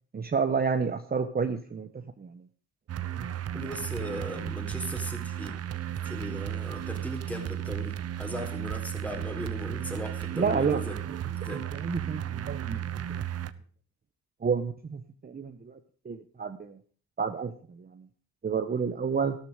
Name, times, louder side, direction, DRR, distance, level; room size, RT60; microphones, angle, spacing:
voice 1, 0.1-1.9 2.2-2.4 3.2-3.3 10.3-10.8 11.5-13.2 14.4-15.8 16.0-16.8 17.2-18.0 18.4-19.4, right 5 dB, 30° right, 6 dB, 1.2 m, -30 dB
sound 1, 2.9-13.5, right 11 dB, 55° right, 1.0 m, -34 dB
voice 2, 3.5-5.6 6.0-11.0 11.2-11.6, equal, 5° left, 3 dB, 4.0 m, -38 dB
13.0 x 12.5 x 5.1 m, 0.42 s
cardioid pair, 90°, 30 cm